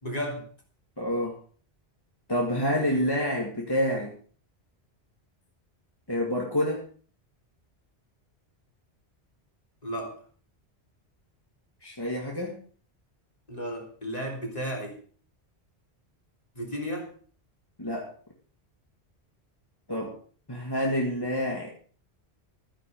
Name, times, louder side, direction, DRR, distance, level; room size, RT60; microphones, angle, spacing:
voice 1, 0.0-0.4 9.8-10.1 13.5-15.0 16.6-17.1, equal, 35° left, 0 dB, 3.8 m, -33 dB
voice 2, 1.0-1.4 2.3-4.2 6.1-6.9 11.8-12.6 17.8-18.1 19.9-20.2 20.5-21.8, equal, 20° left, -1 dB, 2.0 m, -28 dB
13.5 x 10.5 x 5.3 m, 0.43 s
omnidirectional pair, 1.1 m